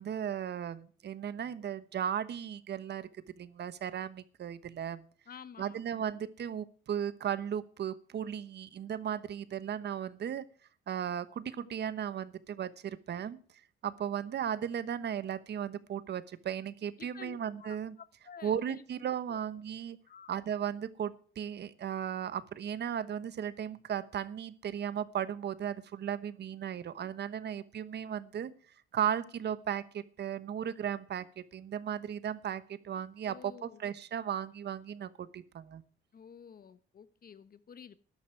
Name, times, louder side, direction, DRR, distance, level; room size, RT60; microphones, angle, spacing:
voice 1, 0.0-3.1 3.4-5.0 5.6-10.4 10.9-13.4 13.8-17.9 18.4-20.0 20.3-28.5 28.9-35.8, right 9 dB, 60° right, 1.1 m, -36 dB
voice 2, 5.3-5.8 17.0-17.8 18.2-18.8 19.3-19.4 20.1-20.3 33.2-33.8 36.1-38.0, left 7 dB, 50° left, 1.2 m, -51 dB
14.0 x 11.0 x 4.7 m
cardioid pair, 90°, 20 cm